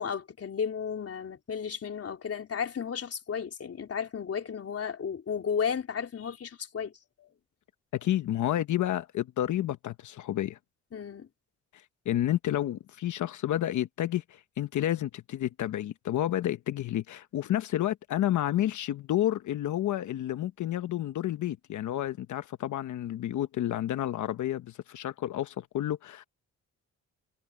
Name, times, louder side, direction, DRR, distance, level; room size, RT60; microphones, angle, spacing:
voice 1, 0.0-6.9 7.2-7.3 10.9-11.3, left 7 dB, 50° left, 4.0 m, -33 dB
voice 2, 7.9-10.6 11.7-26.2, left 12 dB, 75° left, 1.1 m, -30 dB
cardioid pair, 75°, 30 cm